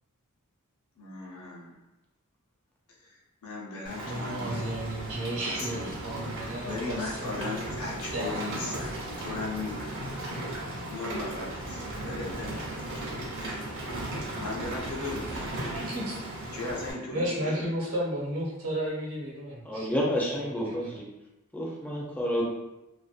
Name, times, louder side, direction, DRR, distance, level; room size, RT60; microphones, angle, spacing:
voice 1, 1.0-1.8 3.0-4.7 5.4-5.9 6.6-8.9 9.2-10.0 10.9-13.6 14.4-15.5 16.5-17.6, left 3 dB, 80° left, -3 dB, 0.6 m, -37 dB
Rain, 3.8-16.9, right 1 dB, 55° right, 0.6 m, -36 dB
voice 2, 4.0-7.5 8.1-8.9 14.3-14.4 15.7-16.2 17.1-21.0, right 1 dB, 75° right, -5 dB, 0.9 m, -34 dB
voice 3, 19.7-21.0 21.5-22.4, equal, 5° left, -3 dB, 0.3 m, -29 dB
2.5 x 2.1 x 2.4 m, 0.95 s
head